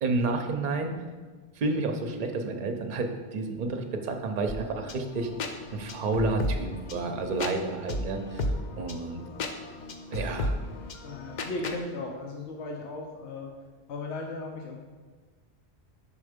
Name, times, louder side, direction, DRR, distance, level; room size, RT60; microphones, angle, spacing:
voice 1, 0.0-0.9 1.6-5.3 5.7-8.4 8.8-9.2 10.1-10.5, right 3 dB, 50° right, 5 dB, 0.7 m, -30 dB
sound 1, 4.5-11.8, left 1 dB, 50° left, 0.6 m, -34 dB
voice 2, 11.0-13.5 13.9-14.8, left 2 dB, 85° left, 1 dB, 1.0 m, -36 dB
5.6 x 4.3 x 5.0 m, 1.4 s
omnidirectional pair, 1.1 m